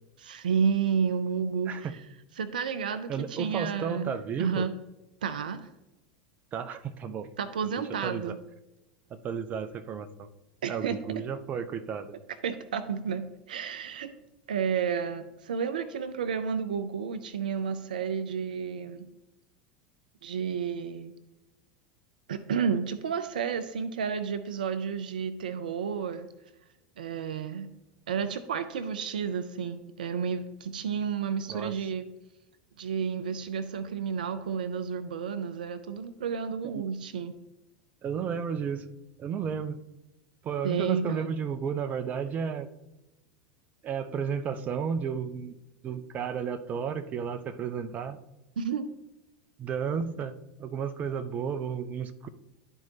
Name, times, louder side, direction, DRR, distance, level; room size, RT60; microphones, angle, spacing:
voice 1, 0.2-1.9 2.4-4.1 4.4-4.7 5.2-5.7 7.4-8.4 10.6-11.2 12.4-14.1 14.5-19.1 20.2-21.2 22.3-26.3 27.0-27.7 28.1-32.1 32.8-37.3 40.6-41.3 48.6-48.9, right 6 dB, 75° right, 12 dB, 0.5 m, -31 dB
voice 2, 3.1-4.7 6.5-7.3 7.6-8.4 9.1-10.3 10.7-12.1 31.5-31.9 36.6-36.8 38.0-38.9 39.2-39.8 40.4-42.7 43.8-45.6 45.8-48.2 49.6-52.3, right 7 dB, 35° right, 11 dB, 0.6 m, -33 dB
11.5 x 4.4 x 2.8 m, 0.96 s
hypercardioid pair, 85°, 5 cm